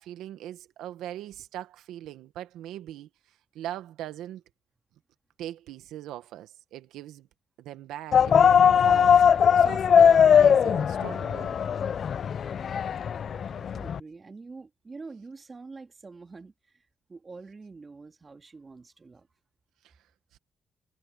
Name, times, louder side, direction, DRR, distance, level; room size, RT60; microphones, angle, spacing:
voice 1, 0.0-4.4 5.4-7.3 7.6-11.6 19.8-20.0 20.3-20.4, right 12 dB, 85° right, 1.2 m, -40 dB
sound 1, 8.1-14.0, left 7 dB, 55° left, 0.4 m, -20 dB
voice 2, 13.3-19.3, right 4 dB, 30° right, 2.6 m, -46 dB
cardioid pair, 90°, 0 cm